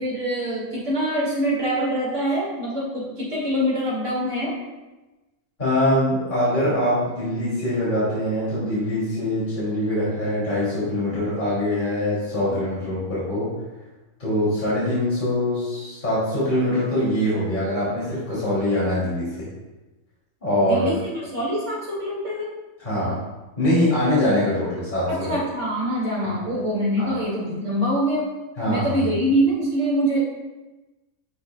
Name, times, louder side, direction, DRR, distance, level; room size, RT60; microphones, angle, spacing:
voice 1, 0.0-4.5 6.7-6.8 20.6-22.4 25.1-28.3 28.7-30.2, equal, 60° right, -6 dB, 2.7 m, -24 dB
voice 2, 5.6-13.5 14.2-19.5 20.4-20.9 22.8-23.2 23.6-25.3 27.0-27.1 28.6-28.9, left 1 dB, 35° left, -9 dB, 3.0 m, -23 dB
10.5 x 6.7 x 2.3 m, 1.1 s
omnidirectional pair, 1.4 m